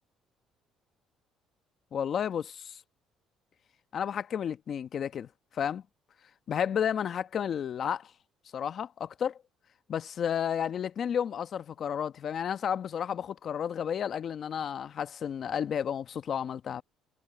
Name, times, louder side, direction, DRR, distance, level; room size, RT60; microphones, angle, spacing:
voice 1, 1.9-2.8 3.9-5.8 6.5-8.1 8.5-9.4 9.9-16.8, left 8 dB, 55° left, 1.3 m, -32 dB
supercardioid pair, 80°, 0 cm